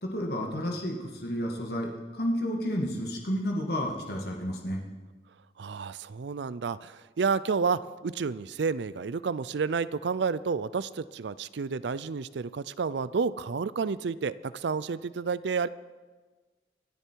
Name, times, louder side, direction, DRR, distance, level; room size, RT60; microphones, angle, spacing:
voice 1, 0.0-4.8, equal, 60° left, 0 dB, 2.0 m, -31 dB
voice 2, 5.6-15.7, right 5 dB, 75° right, 17 dB, 0.5 m, -30 dB
26.0 x 10.0 x 4.7 m, 1.3 s
head